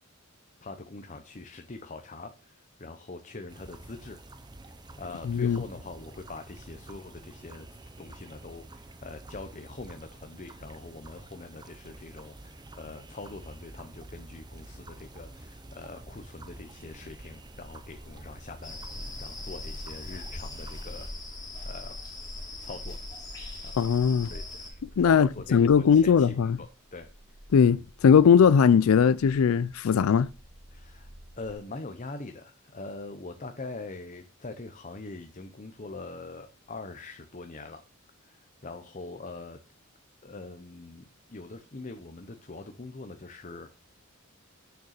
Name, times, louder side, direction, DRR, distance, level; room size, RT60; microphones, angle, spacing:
voice 1, 0.6-4.2 5.0-7.7 8.0-21.1 21.6-22.0 22.6-23.0 23.6-23.8 24.3-27.1 30.7-31.1 31.4-37.8 38.2-39.6 40.2-43.7, left 3 dB, 35° left, 0.8 m, -43 dB
sound 1, 3.5-21.1, right 2 dB, 20° right, 0.7 m, -48 dB
voice 2, 5.3-5.6 23.8-24.3 25.0-26.6 27.5-30.3, left 7 dB, 80° left, 0.4 m, -20 dB
sound 2, 18.6-24.7, left 2 dB, 20° left, 3.1 m, -40 dB
sound 3, 30.0-31.5, equal, 50° right, 3.0 m, -53 dB
6.8 x 6.6 x 6.5 m
head